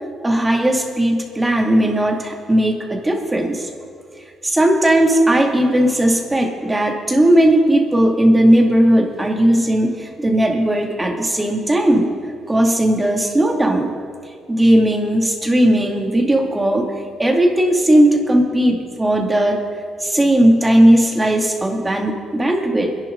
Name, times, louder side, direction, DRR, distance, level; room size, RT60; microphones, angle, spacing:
voice 1, 0.2-3.7 4.4-12.1 12.5-13.9 14.5-16.9 17.2-19.6 20.0-22.9, right 1 dB, 15° right, 1 dB, 2.4 m, -16 dB
25.5 x 11.0 x 3.9 m, 2.2 s
cardioid pair, 90°, 0 cm